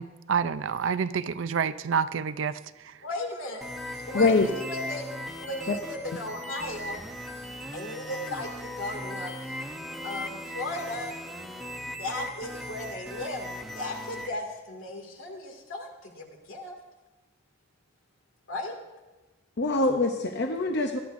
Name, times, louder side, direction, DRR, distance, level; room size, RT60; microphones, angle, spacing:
voice 1, 0.0-2.6, right 6 dB, 65° right, 14 dB, 0.5 m, -28 dB
voice 2, 3.0-3.7 4.1-5.1 5.4-7.0 7.7-9.6 10.0-11.2 12.0-16.8 18.5-18.8, left 2 dB, 80° left, 2 dB, 2.3 m, -36 dB
sound 1, 3.6-14.3, equal, ahead, 0.8 m, -38 dB
voice 3, 4.1-4.5 5.7-5.8 19.6-21.0, left 3 dB, 55° left, 4 dB, 0.7 m, -24 dB
19.5 x 13.0 x 2.6 m, 1.1 s
head